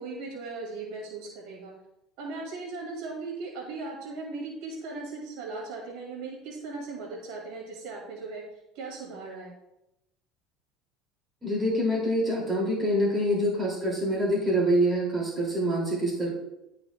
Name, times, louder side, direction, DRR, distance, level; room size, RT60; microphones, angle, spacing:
voice 1, 0.0-1.7 2.2-8.4 8.7-9.5, right 3 dB, 70° right, -3 dB, 2.0 m, -38 dB
voice 2, 11.4-16.4, equal, 25° right, -3 dB, 2.4 m, -26 dB
11.5 x 4.8 x 2.2 m, 0.88 s
supercardioid pair, 110°, 0 cm